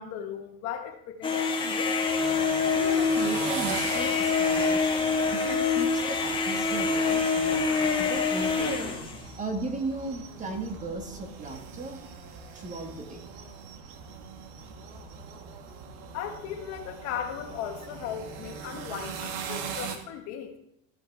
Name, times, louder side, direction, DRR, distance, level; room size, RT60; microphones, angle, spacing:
voice 1, 0.0-2.3 16.1-20.6, left 9 dB, 50° left, 5 dB, 1.4 m, -37 dB
sound 1, 1.2-9.2, left 4 dB, 15° left, 1.4 m, -26 dB
sound 2, 2.1-20.0, right 6 dB, 65° right, 1.5 m, -41 dB
voice 2, 2.7-9.1 9.4-12.0 12.5-13.2, right 3 dB, 20° right, 5 dB, 1.3 m, -36 dB
13.5 x 5.0 x 4.6 m, 0.73 s
supercardioid pair, 140°, 34 cm